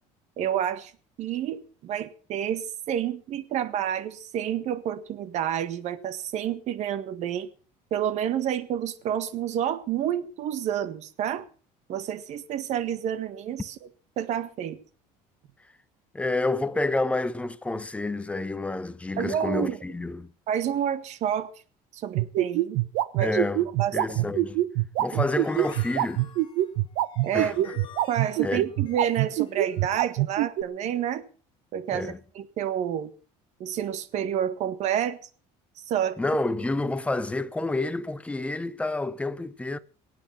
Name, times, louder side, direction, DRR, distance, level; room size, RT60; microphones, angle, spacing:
voice 1, 0.4-0.9 1.2-7.5 7.9-11.4 11.9-13.8 14.2-14.8 19.2-19.8 20.5-21.5 21.9-22.8 23.1-23.4 23.8-24.4 25.1-25.2 27.2-27.8 28.1-31.2 31.7-33.1 33.6-35.2 35.9-36.2, right 10 dB, 55° right, 1.7 m, -29 dB
voice 2, 16.1-20.3 23.2-23.7 23.9-24.6 25.0-26.3 27.3-27.5 28.4-28.6 31.9-32.2 36.2-39.8, left 2 dB, 10° left, 0.7 m, -29 dB
sound 1, 22.1-30.6, right 16 dB, 75° right, 1.0 m, -24 dB
sound 2, 25.1-30.0, left 8 dB, 35° left, 3.8 m, -47 dB
22.5 x 8.7 x 5.8 m
cardioid pair, 135°, 14 cm